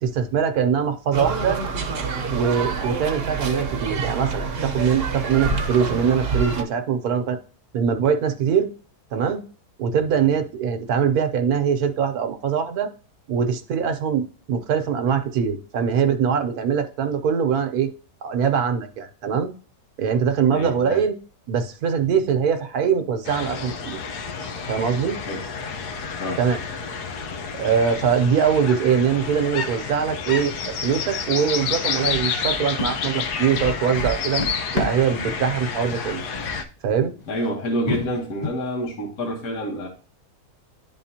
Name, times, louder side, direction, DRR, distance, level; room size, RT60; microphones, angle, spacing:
voice 1, 0.0-1.6 2.3-7.4 7.7-8.7 9.1-9.4 9.8-12.9 13.3-17.9 18.2-19.5 20.0-21.1 21.5-24.0 24.7-25.2 26.4-26.6 27.6-34.4 34.7-36.2 36.8-37.1, right 7 dB, 75° right, 8 dB, 1.2 m, -22 dB
sound 1, 1.1-6.6, right 4 dB, 45° right, 0.9 m, -27 dB
voice 2, 20.5-21.0 25.3-25.4 26.2-26.4 37.3-39.9, equal, 70° left, 0 dB, 1.7 m, -28 dB
sound 2, 23.2-36.6, left 6 dB, 85° left, 1.3 m, -30 dB
sound 3, 32.1-35.3 35.8-36.1 36.4-36.6 37.2-37.3 37.9-38.5, left 2 dB, 45° left, 0.5 m, -29 dB
11.0 x 3.6 x 2.8 m, 0.38 s
omnidirectional pair, 1.6 m